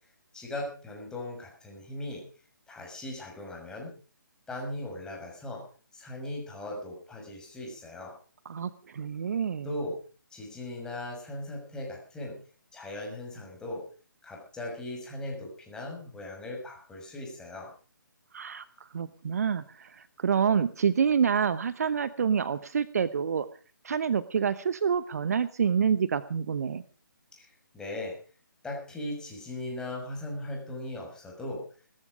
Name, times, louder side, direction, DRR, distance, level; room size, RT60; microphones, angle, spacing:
voice 1, 0.3-2.2 2.7-3.9 4.5-5.6 5.9-8.1 9.6-10.0 10.3-12.4 12.7-13.8 14.2-17.7 27.3-28.2 28.6-31.6, left 1 dB, 5° left, -1 dB, 6.2 m, -38 dB
voice 2, 8.4-9.7 18.3-23.5 23.8-26.8, right 7 dB, 50° right, 16 dB, 0.9 m, -27 dB
18.5 x 14.5 x 5.0 m, 0.40 s
figure-of-eight pair, 145°, 11 cm